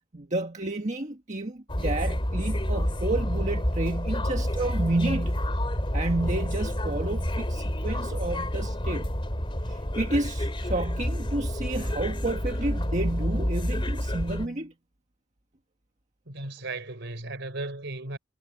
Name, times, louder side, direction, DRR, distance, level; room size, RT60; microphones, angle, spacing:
voice 1, 0.1-5.4 5.9-9.1 9.7-14.7, right 2 dB, 35° right, 1.6 m, -30 dB
sound 1, 1.7-14.5, equal, 25° left, 3.3 m, -29 dB
voice 2, 16.3-18.2, right 2 dB, 60° right, 4.7 m, -36 dB
head